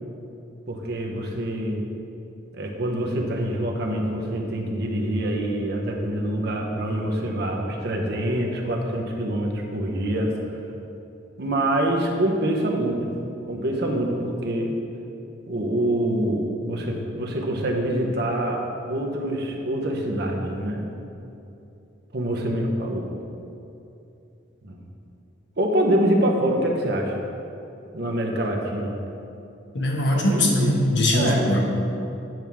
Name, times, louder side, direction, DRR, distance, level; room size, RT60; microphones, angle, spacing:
voice 1, 0.7-1.8 2.5-10.3 11.4-13.2 13.4-14.8 15.5-18.6 18.9-20.9 22.1-23.1 24.6-24.8 25.6-27.2 27.9-29.0 30.1-30.8 31.1-31.6, right 1 dB, 55° right, 1 dB, 0.9 m, -25 dB
voice 2, 29.7-31.6, left 1 dB, 65° left, -1 dB, 1.2 m, -21 dB
9.0 x 3.5 x 6.0 m, 2.8 s
head